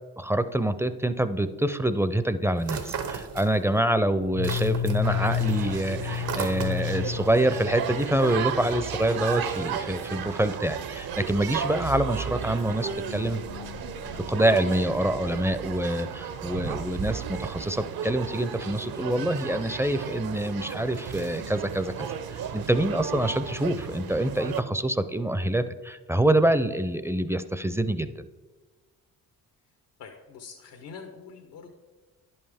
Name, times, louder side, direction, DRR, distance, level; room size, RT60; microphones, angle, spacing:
voice 1, 0.2-13.4 14.3-28.1, right 1 dB, 5° right, 12 dB, 0.4 m, -26 dB
sound 1, 2.6-3.9 4.2-7.1, right 6 dB, 80° right, 1.0 m, -35 dB
sound 2, 2.9-3.3 4.2-8.7 9.1-9.2 9.5-9.8 10.1-10.4 11.0-11.1 12.1-15.3, left 9 dB, 55° left, 0.4 m, -33 dB
sound 3, 5.0-24.6, right 7 dB, 60° right, 0.7 m, -34 dB
voice 2, 30.0-31.7, left 5 dB, 90° left, 2 dB, 0.9 m, -44 dB
10.5 x 5.5 x 3.5 m, 1.3 s
supercardioid pair, 55°, 41 cm